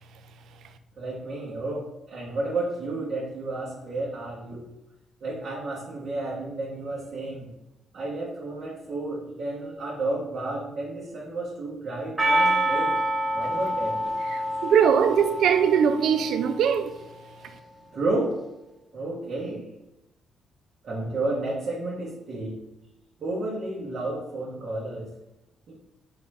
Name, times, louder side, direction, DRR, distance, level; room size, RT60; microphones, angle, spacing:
voice 1, 1.0-4.7 5.2-7.5 7.9-13.0 13.3-14.0 17.9-18.4 18.9-19.7 20.8-22.6 23.2-25.1 25.7-25.8, right 2 dB, 55° right, 0.9 m, -31 dB
Percussion, 12.2-16.5, right 1 dB, 20° right, 1.0 m, -26 dB
voice 2, 14.3-17.0, right 8 dB, 75° right, 0.4 m, -21 dB
3.8 x 3.4 x 3.2 m
cardioid pair, 90°, 0 cm